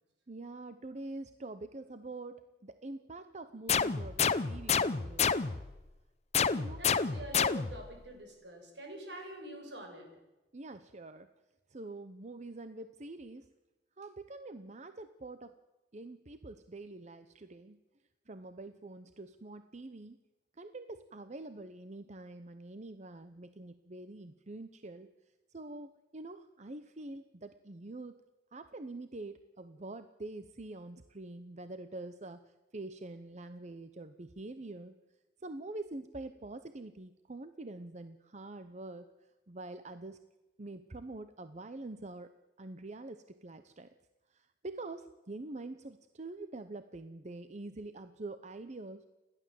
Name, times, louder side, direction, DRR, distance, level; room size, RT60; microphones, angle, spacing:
voice 1, 0.3-5.3 6.6-6.9 10.5-11.3 11.7-13.5 14.0-15.5 15.9-17.8 18.3-20.2 20.6-25.1 25.5-28.2 28.5-32.4 32.7-34.9 35.4-39.1 39.5-40.2 40.6-42.3 42.6-43.9 44.3-49.1, right 2 dB, 40° right, 10 dB, 0.8 m, -45 dB
sound 1, 3.7-5.8 6.3-7.9, left 6 dB, 40° left, 0.7 m, -29 dB
voice 2, 6.8-10.1, equal, 75° right, 3 dB, 6.1 m, -45 dB
29.5 x 12.0 x 7.7 m, 1.1 s
head